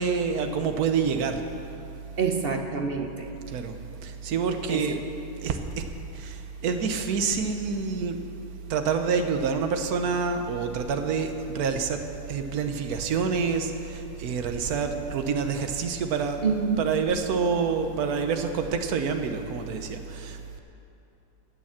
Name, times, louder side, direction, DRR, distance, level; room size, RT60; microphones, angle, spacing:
voice 1, 0.0-1.4 3.5-3.7 4.0-5.0 5.4-5.8 6.2-6.4 6.6-8.2 8.7-16.4 16.8-20.6, right 5 dB, 65° right, 6 dB, 1.4 m, -27 dB
voice 2, 2.2-3.3 4.7-4.8 16.4-16.9, right 5 dB, 45° right, 5 dB, 0.8 m, -27 dB
18.0 x 6.9 x 7.5 m, 2.8 s
omnidirectional pair, 1.7 m